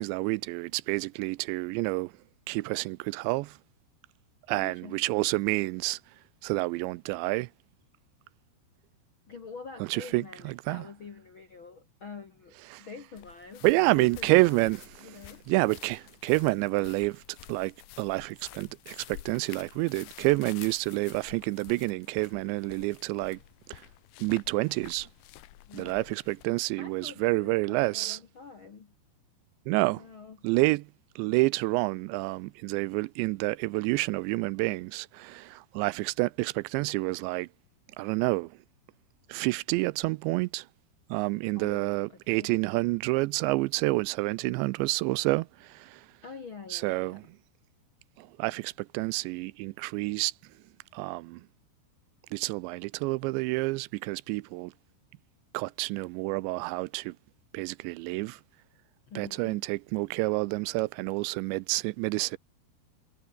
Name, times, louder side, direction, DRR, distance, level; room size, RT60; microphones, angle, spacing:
voice 1, 0.0-2.1 2.5-3.6 4.5-6.0 6.4-7.5 9.9-10.8 12.7-12.9 13.6-15.2 15.5-17.2 17.5-23.4 23.7-23.8 24.2-25.1 25.7-28.2 29.7-30.0 30.4-30.9 31.2-37.5 38.0-38.5 39.3-40.7 41.1-46.1 46.7-47.2 48.2-50.3 50.9-51.4 52.3-54.7 55.5-57.2 57.5-58.4 59.2-62.4, right 23 dB, 85° right, 2.7 m, -28 dB
voice 2, 4.5-5.6 9.3-14.6 15.0-15.5 25.6-26.1 26.8-28.9 29.9-30.5 41.5-42.6 46.2-47.2 59.1-59.6, left 5 dB, 55° left, 1.4 m, -46 dB
sound 1, 13.2-26.5, left 16 dB, 85° left, 3.6 m, -50 dB
omnidirectional pair, 5.3 m